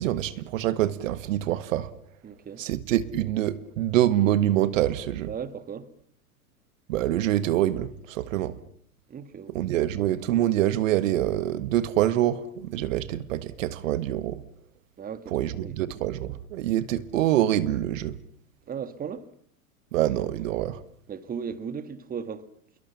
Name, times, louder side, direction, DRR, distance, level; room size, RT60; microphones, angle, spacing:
voice 1, 0.0-1.9 2.6-5.3 6.9-8.5 9.5-14.4 15.3-18.1 19.9-20.8, right 13 dB, 60° right, 1.6 m, -25 dB
voice 2, 2.2-2.6 5.3-5.9 9.1-10.0 15.0-15.7 18.7-19.3 21.1-22.5, right 7 dB, 20° right, 1.7 m, -37 dB
27.5 x 22.5 x 7.1 m
hypercardioid pair, 100°, 44 cm